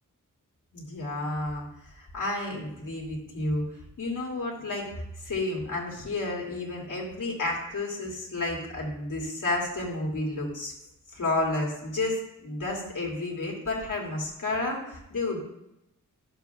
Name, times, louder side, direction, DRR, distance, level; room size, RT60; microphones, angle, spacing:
voice 1, 0.7-1.7 1.9-3.6 4.0-4.9 5.2-10.7 11.1-15.4, left 2 dB, 65° left, -2 dB, 2.5 m, -31 dB
12.0 x 7.5 x 2.3 m, 0.85 s
wide cardioid pair, 100°, 33 cm